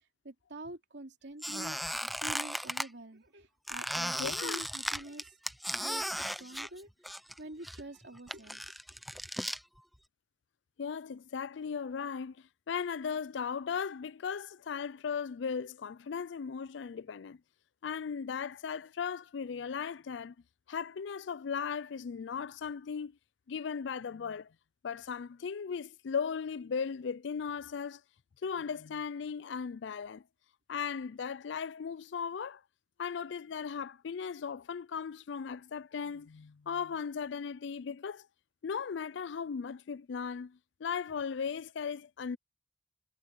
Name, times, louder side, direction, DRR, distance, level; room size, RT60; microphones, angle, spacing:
voice 1, 0.2-1.8 2.2-5.3 5.8-6.9 7.4-8.8, right 1 dB, 65° right, 3.1 m, -46 dB
Squeak, 1.4-2.9 3.7-7.4 7.6-9.6, equal, ahead, 0.6 m, -36 dB
voice 2, 4.2-4.6 10.8-12.4 12.7-17.4 17.8-20.3 20.7-23.2 23.5-24.5 24.8-28.0 28.4-30.2 30.7-32.6 33.0-38.3 38.6-42.4, left 6 dB, 70° left, 0.4 m, -37 dB
head